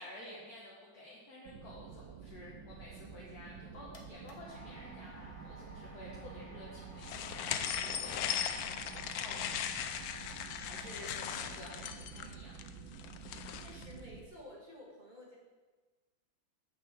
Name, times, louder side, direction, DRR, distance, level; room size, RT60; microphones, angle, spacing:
voice 1, 0.0-12.8, left 1 dB, 55° left, -5 dB, 1.7 m, -51 dB
sound 1, 1.4-14.3, right 6 dB, 80° right, 1.4 m, -50 dB
sound 2, 3.5-11.5, equal, 30° left, 0.7 m, -55 dB
sound 3, 7.0-13.9, left 9 dB, 85° left, 0.8 m, -38 dB
voice 2, 13.6-15.4, left 1 dB, 25° right, -4 dB, 1.8 m, -52 dB
6.5 x 5.7 x 7.3 m, 1.3 s
omnidirectional pair, 2.1 m